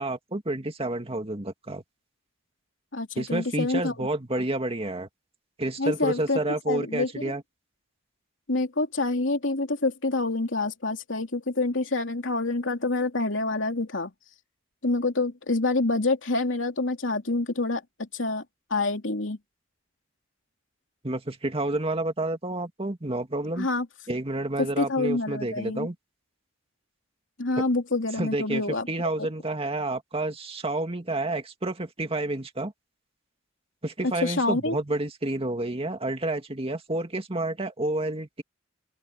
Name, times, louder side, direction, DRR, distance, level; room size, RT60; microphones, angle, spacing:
voice 1, 0.0-1.8 3.2-5.1 5.6-7.4 21.0-23.7 24.1-26.0 28.2-28.6 28.9-32.7 33.8-38.4, right 2 dB, 30° right, 2.2 m, -29 dB
voice 2, 2.9-4.1 4.3-4.4 5.8-7.3 8.5-14.1 14.8-18.4 18.7-19.4 23.6-23.9 24.6-25.9 27.4-28.9 34.0-34.7, left 2 dB, 70° left, 3.1 m, -27 dB
open air
head